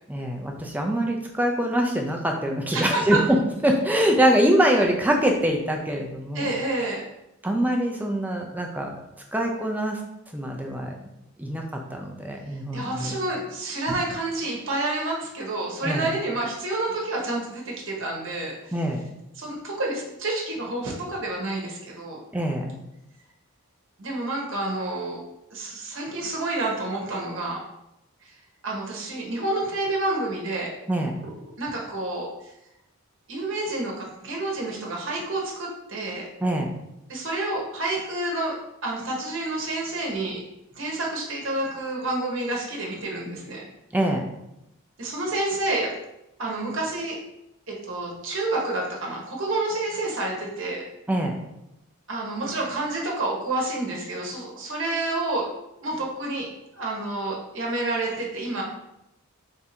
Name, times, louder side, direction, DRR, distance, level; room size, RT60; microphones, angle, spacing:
voice 1, 0.1-3.2 3.6-6.5 7.4-8.9 9.3-10.0 10.3-10.9 11.4-11.6 11.9-13.2 15.8-16.1 18.7-19.0 22.3-22.8 30.9-31.2 36.4-36.7 43.9-44.2 51.1-51.3, right 1 dB, 5° right, 2 dB, 0.4 m, -24 dB
voice 2, 2.7-3.2 6.3-7.0 12.7-18.8 19.3-22.2 24.0-25.2 25.5-27.6 28.2-28.3 28.6-30.7 31.2-32.3 33.3-36.3 37.1-38.5 38.8-40.4 40.7-43.6 45.0-45.9 46.4-47.2 47.7-50.8 52.1-55.5 55.8-56.5 56.7-58.6, right 2 dB, 60° right, -2 dB, 1.0 m, -29 dB
3.6 x 2.6 x 4.2 m, 0.87 s
head